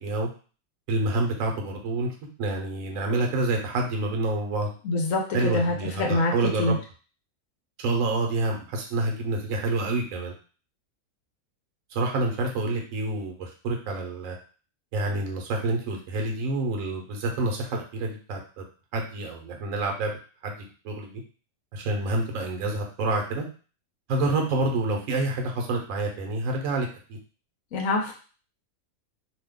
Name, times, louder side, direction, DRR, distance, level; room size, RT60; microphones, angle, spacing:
voice 1, 0.9-2.1 2.4-4.7 5.3-6.8 7.8-10.3 11.9-14.4 14.9-18.6 18.9-20.1 20.4-20.6 20.8-21.2 21.7-23.4 24.1-27.2, right 2 dB, 70° right, 2 dB, 1.1 m, -28 dB
voice 2, 4.8-6.3 6.6-6.8 27.7-28.1, left 2 dB, 70° left, 1 dB, 1.0 m, -25 dB
2.8 x 2.3 x 3.5 m, 0.38 s
omnidirectional pair, 1.5 m